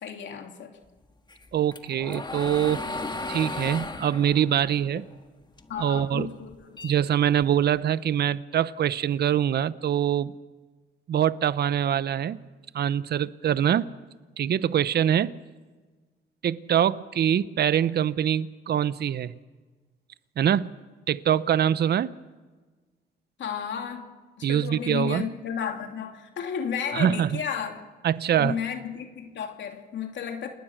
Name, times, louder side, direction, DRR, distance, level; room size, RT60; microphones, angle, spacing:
voice 1, 0.0-0.7 5.7-6.8 23.4-24.1 24.4-27.9 28.4-30.5, left 7 dB, 70° left, 3.0 m, -33 dB
sound 1, 1.3-5.8 6.2-7.7, left 2 dB, 20° left, 1.6 m, -36 dB
voice 2, 1.5-2.8 3.3-5.0 5.8-6.3 6.8-10.3 11.1-12.4 12.7-13.9 14.4-15.3 16.4-19.3 20.4-20.7 21.1-22.1 24.4-25.2 26.9-27.4 28.0-28.5, right 9 dB, 55° right, 0.8 m, -24 dB
29.5 x 20.0 x 6.4 m
cardioid pair, 90°, 20 cm